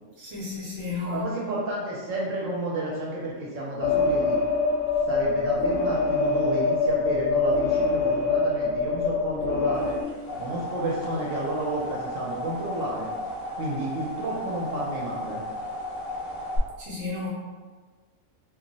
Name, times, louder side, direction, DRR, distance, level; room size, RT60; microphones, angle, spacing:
voice 1, 0.2-1.3 16.8-17.3, left 4 dB, 25° right, -6 dB, 0.7 m, -33 dB
voice 2, 1.0-4.4 5.1-10.0 10.4-13.1 13.6-15.4, right 1 dB, 70° right, -4 dB, 0.9 m, -31 dB
sound 1, 3.8-10.0, left 3 dB, 85° left, 1.0 m, -24 dB
sound 2, 9.9-16.6, left 1 dB, 55° left, 0.7 m, -35 dB
2.3 x 2.0 x 3.8 m, 1.4 s
omnidirectional pair, 1.5 m